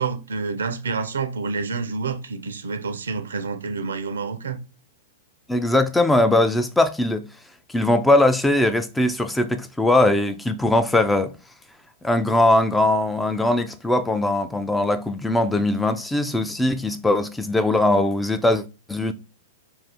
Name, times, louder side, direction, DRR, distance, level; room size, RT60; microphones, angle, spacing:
voice 1, 0.0-4.6, right 4 dB, 85° right, 0.5 m, -28 dB
voice 2, 5.5-7.2 7.7-11.3 12.0-18.6 18.9-19.1, left 1 dB, 5° left, 0.3 m, -20 dB
2.6 x 2.4 x 3.4 m
hypercardioid pair, 115°, 0 cm